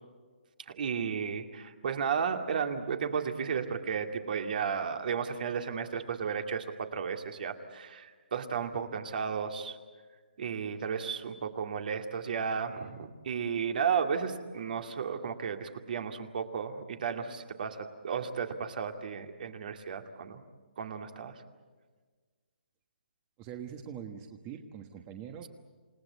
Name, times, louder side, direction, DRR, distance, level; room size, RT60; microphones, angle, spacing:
voice 1, 0.7-9.8 10.4-20.4 20.8-21.4, right 6 dB, 55° right, 6 dB, 2.3 m, -33 dB
voice 2, 23.4-25.5, right 8 dB, 25° right, 5 dB, 1.3 m, -43 dB
28.5 x 18.5 x 8.3 m, 1.4 s
hypercardioid pair, 155°, 6 cm